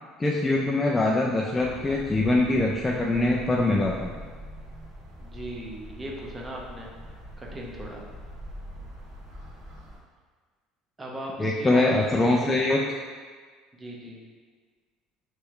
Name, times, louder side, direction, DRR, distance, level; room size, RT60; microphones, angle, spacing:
voice 1, 0.2-4.2 11.4-12.8, left 2 dB, 10° left, -2 dB, 0.3 m, -23 dB
sound 1, 1.6-10.0, equal, 60° right, 1.2 m, -43 dB
voice 2, 5.2-6.9 7.4-8.0 11.0-12.5 13.7-14.2, right 1 dB, 15° right, -2 dB, 0.7 m, -38 dB
3.4 x 3.2 x 4.6 m, 1.5 s
cardioid pair, 145°, 0 cm